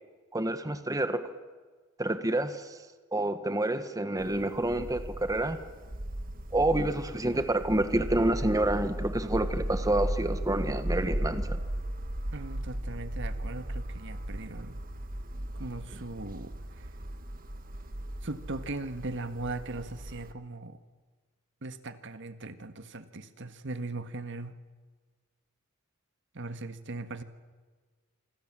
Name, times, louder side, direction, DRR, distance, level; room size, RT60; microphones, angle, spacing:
voice 1, 0.3-1.2 2.0-2.8 3.1-5.6 6.5-11.6, right 1 dB, 15° right, 9 dB, 1.3 m, -28 dB
sound 1, 4.2-20.3, right 1 dB, 45° right, 1.6 m, -36 dB
voice 2, 12.3-14.8 15.5-16.9 18.2-20.8 21.6-24.6 26.3-27.2, right 2 dB, 60° right, 10 dB, 1.6 m, -39 dB
26.5 x 26.0 x 7.6 m, 1.4 s
head